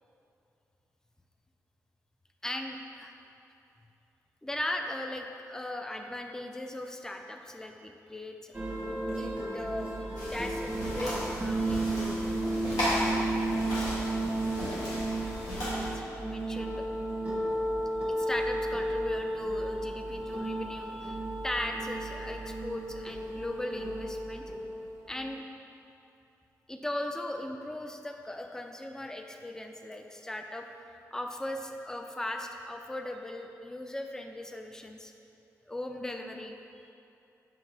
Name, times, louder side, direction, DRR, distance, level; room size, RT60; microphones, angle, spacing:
voice 1, 2.4-3.1 4.4-8.6 9.2-9.9 10.3-12.2 13.6-14.0 15.3-16.8 18.0-24.4 25.1-25.4 26.7-35.1 35.7-36.9, left 1 dB, 10° left, 4 dB, 0.3 m, -38 dB
sound 1, 8.5-25.3, right 1 dB, 20° right, 1.0 m, -33 dB
sound 2, 10.1-15.9, equal, 80° left, 1.3 m, -35 dB
5.9 x 2.8 x 2.6 m, 2.7 s
cardioid pair, 55°, 6 cm